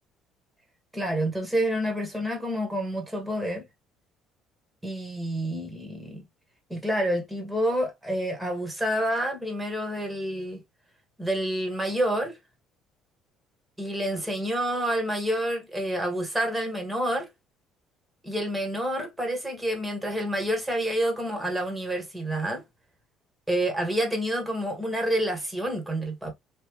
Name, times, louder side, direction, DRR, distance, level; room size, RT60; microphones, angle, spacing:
voice 1, 0.9-3.7 4.8-6.2 6.7-10.6 11.2-12.4 13.8-17.3 18.2-22.6 23.5-26.3, right 1 dB, 10° right, 1.5 m, -28 dB
3.3 x 2.8 x 3.0 m
cardioid pair, 120°, 0 cm